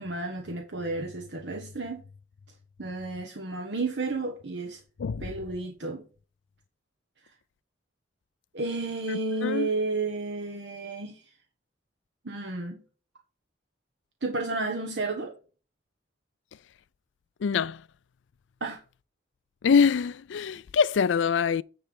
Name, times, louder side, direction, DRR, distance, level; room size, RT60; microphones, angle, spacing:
voice 1, 0.0-2.0 2.8-4.8 5.2-6.0 8.5-11.2 12.2-12.8 14.2-15.3 18.6-18.8, right 3 dB, 70° right, 1.1 m, -32 dB
voice 2, 5.0-5.3 9.1-9.7 17.4-17.8 19.6-21.6, left 6 dB, 80° left, 0.4 m, -24 dB
9.7 x 3.3 x 6.8 m
head